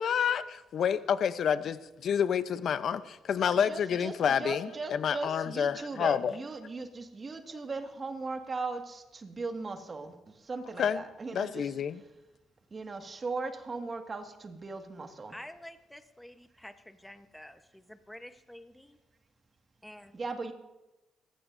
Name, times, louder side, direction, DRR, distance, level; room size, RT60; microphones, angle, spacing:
voice 1, 0.0-6.3 10.8-11.0 11.3-12.0, left 8 dB, 60° left, 13 dB, 0.8 m, -29 dB
voice 2, 3.7-11.7 12.7-15.3 20.1-20.5, right 3 dB, 35° right, 4 dB, 1.9 m, -38 dB
voice 3, 15.3-19.0 19.8-20.2, left 1 dB, 5° left, 8 dB, 1.1 m, -49 dB
28.5 x 15.0 x 2.7 m, 1.0 s
cardioid pair, 90°, 0 cm